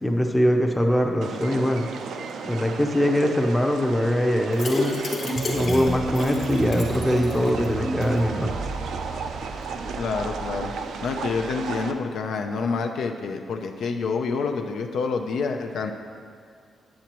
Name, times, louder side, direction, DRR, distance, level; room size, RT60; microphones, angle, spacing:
voice 1, 0.0-1.9 2.4-5.0 5.5-8.5, equal, 5° left, 3 dB, 0.6 m, -22 dB
sound 1, 1.2-11.9, right 5 dB, 85° right, 0.4 m, -35 dB
sound 2, 4.5-7.7 8.0-8.1 8.4-8.5, left 2 dB, 55° left, 1.0 m, -31 dB
sound 3, 5.2-11.8, right 2 dB, 35° right, 0.5 m, -32 dB
voice 2, 10.0-10.7 11.0-15.9, left 4 dB, 80° left, 4 dB, 0.5 m, -27 dB
8.1 x 7.5 x 3.0 m, 2.2 s
cardioid pair, 130°, 0 cm